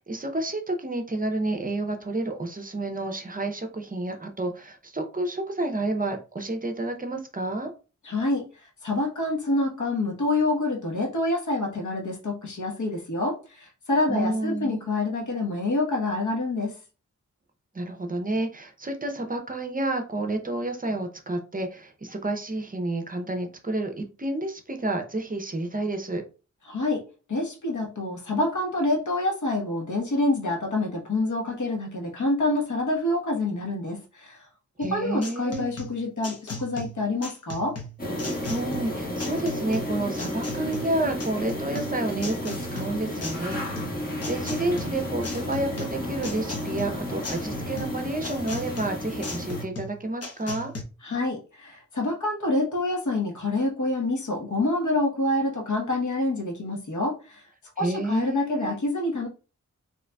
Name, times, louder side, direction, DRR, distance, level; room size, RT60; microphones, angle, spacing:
voice 1, 0.0-7.7 14.1-14.8 17.7-26.2 34.8-35.7 38.5-43.6 43.9-50.7 57.8-58.7, right 2 dB, 30° right, 4 dB, 0.6 m, -30 dB
voice 2, 8.0-8.5 8.8-16.7 26.7-34.5 34.8-37.7 51.0-57.4 57.8-59.3, left 2 dB, 75° left, 0 dB, 1.1 m, -27 dB
sound 1, 34.8-50.8, left 2 dB, 55° left, 0.9 m, -38 dB
sound 2, 38.0-49.6, left 1 dB, 30° left, 1.3 m, -32 dB
3.8 x 2.9 x 2.3 m, 0.34 s
wide cardioid pair, 85°, 30 cm